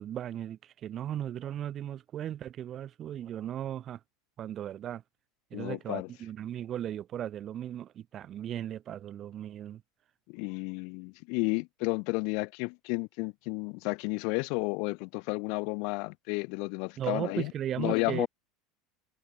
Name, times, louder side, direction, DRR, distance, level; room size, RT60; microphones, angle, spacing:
voice 1, 0.0-4.0 4.4-5.0 5.5-9.8 17.0-18.3, right 11 dB, 30° right, 0.4 m, -36 dB
voice 2, 5.5-6.1 10.3-17.5 17.8-18.3, left 34 dB, 55° left, 0.4 m, -32 dB
supercardioid pair, 155°, 0 cm